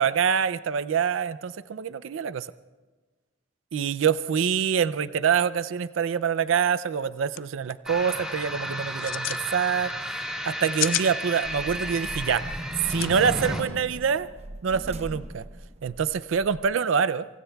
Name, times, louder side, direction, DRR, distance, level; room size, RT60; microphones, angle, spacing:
voice 1, 0.0-2.5 3.7-9.9 10.5-12.4 12.9-14.3 14.6-15.4 15.8-17.3, right 7 dB, 75° right, 16 dB, 0.4 m, -25 dB
sound 1, 6.9-7.0 7.3-7.4 7.7-8.0 8.9-9.4 10.5-11.1 12.8-13.1, left 15 dB, 75° left, 0.4 m, -29 dB
sound 2, 7.9-13.6, equal, 5° right, 2.7 m, -33 dB
sound 3, 11.4-16.7, right 1 dB, 30° right, 0.8 m, -42 dB
25.5 x 25.0 x 2.3 m, 1.3 s
head